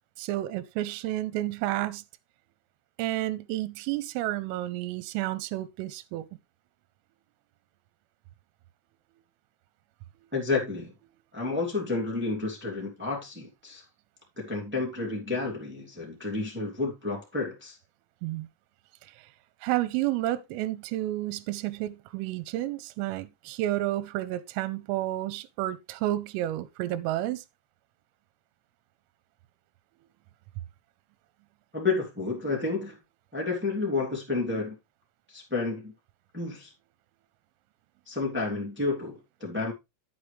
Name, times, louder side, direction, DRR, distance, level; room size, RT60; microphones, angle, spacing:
voice 1, 0.2-2.0 3.0-6.3 18.2-18.5 19.0-19.3 19.6-27.4, right 15 dB, 85° right, 3.2 m, -31 dB
voice 2, 10.3-10.9 11.3-13.8 14.3-17.8 31.7-33.0 33.3-34.8 35.3-35.9 36.3-36.7 38.0-39.7, left 3 dB, 10° right, 0.6 m, -30 dB
9.6 x 8.2 x 3.3 m
omnidirectional pair, 6.0 m